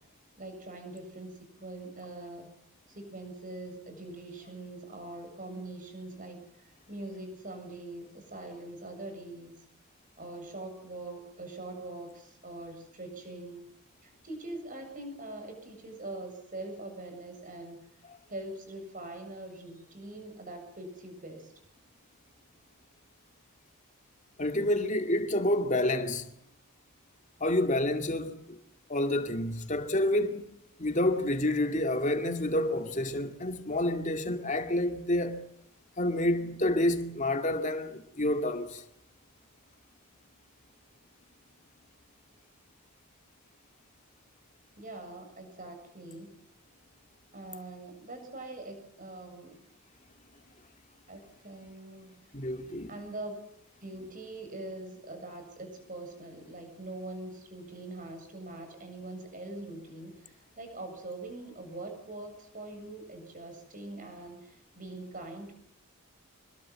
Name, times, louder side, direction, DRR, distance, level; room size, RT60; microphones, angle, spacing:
voice 1, 0.4-2.5 2.9-9.6 10.2-13.7 14.0-17.8 18.3-21.5 44.8-46.3 47.3-49.5 51.1-52.2 52.9-53.4 53.8-65.5, right 2 dB, 35° right, 7.4 m, -43 dB
voice 2, 24.4-26.2 27.4-28.6 28.9-30.5 30.8-35.4 36.0-38.8 52.3-52.9, left 1 dB, 35° left, 2.3 m, -28 dB
26.5 x 21.0 x 7.6 m
head